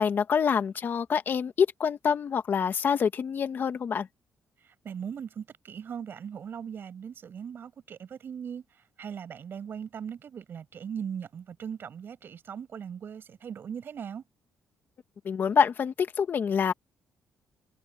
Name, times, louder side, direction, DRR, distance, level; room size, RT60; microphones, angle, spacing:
voice 1, 0.0-4.1 15.2-16.7, left 7 dB, 45° left, 1.6 m, -26 dB
voice 2, 4.6-8.6 9.0-14.2, right 7 dB, 50° right, 7.8 m, -39 dB
cardioid pair, 115°, 5 cm